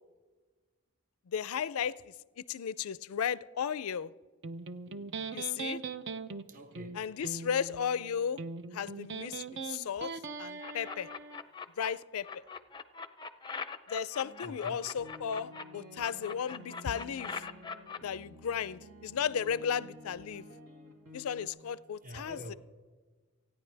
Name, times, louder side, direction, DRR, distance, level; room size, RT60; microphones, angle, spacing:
voice 1, 1.3-2.1 2.5-4.1 5.3-5.8 6.9-8.4 8.7-10.1 10.4-11.1 11.8-12.4 13.9-17.4 18.0-20.4 21.1-22.5, left 7 dB, 80° left, 0.4 m, -35 dB
Electric guitar, 4.4-11.4, right 4 dB, 55° right, 0.6 m, -41 dB
voice 2, 6.5-7.0 14.4-14.9 22.0-22.6, equal, 40° right, 1.2 m, -46 dB
sound 1, 10.6-11.9 12.2-15.6 16.0-18.0, left 5 dB, 20° left, 0.5 m, -41 dB
sound 2, 14.2-21.5, left 1 dB, 80° right, 2.7 m, -52 dB
29.5 x 10.0 x 3.4 m
head